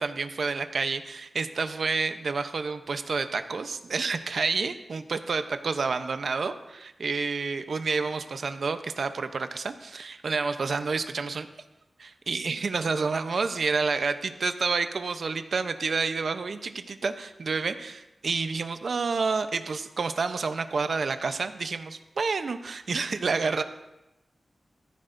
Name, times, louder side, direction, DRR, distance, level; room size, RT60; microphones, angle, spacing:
voice 1, 0.0-11.5 12.0-23.6, right 4 dB, 70° right, 9 dB, 0.8 m, -29 dB
17.0 x 14.0 x 2.7 m, 0.93 s
wide cardioid pair, 110°, 0 cm